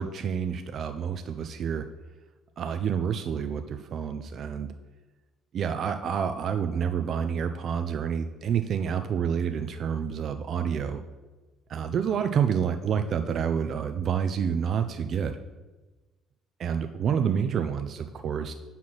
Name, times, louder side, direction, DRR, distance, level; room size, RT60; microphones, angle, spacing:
voice 1, 0.0-1.9 2.6-4.7 5.5-11.0 11.7-15.4 16.6-18.5, right 7 dB, 50° right, 8 dB, 0.4 m, -28 dB
5.9 x 4.2 x 6.0 m, 1.2 s
figure-of-eight pair, 50°, 0 cm